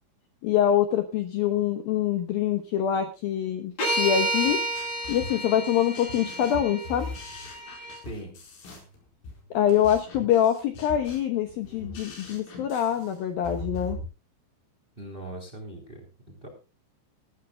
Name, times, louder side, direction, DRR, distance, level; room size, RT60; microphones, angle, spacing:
voice 1, 0.4-4.6 5.1-7.1 9.5-14.0, left 10 dB, 70° left, 8 dB, 2.3 m, -25 dB
sound 1, 3.8-8.0, right 1 dB, 35° left, 8.0 m, -30 dB
sound 2, 4.5-14.0, left 2 dB, 90° left, 7.0 m, -41 dB
voice 2, 8.0-8.3 15.0-16.0 16.4-16.5, right 1 dB, 15° right, 5 dB, 2.5 m, -39 dB
19.5 x 13.5 x 2.3 m, 0.30 s
omnidirectional pair, 5.4 m